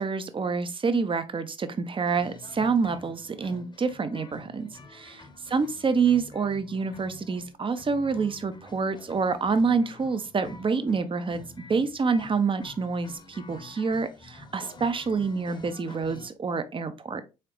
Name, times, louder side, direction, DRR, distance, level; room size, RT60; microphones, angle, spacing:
voice 1, 0.0-5.2 5.5-17.2, right 5 dB, 30° right, 0.6 m, -27 dB
sound 1, 2.1-16.3, left 3 dB, 25° left, 0.8 m, -48 dB
3.7 x 3.2 x 3.0 m
hypercardioid pair, 50°, 19 cm